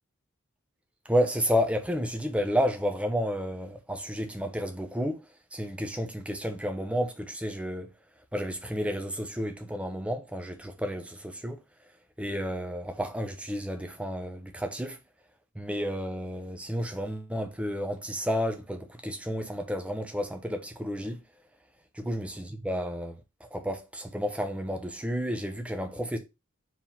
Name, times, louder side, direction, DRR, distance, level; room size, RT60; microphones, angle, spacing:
voice 1, 1.1-5.2 5.5-7.9 8.3-11.6 12.2-15.0 15.5-21.2 22.0-26.2, equal, 5° right, 0.9 m, -31 dB
4.7 x 3.7 x 5.6 m
head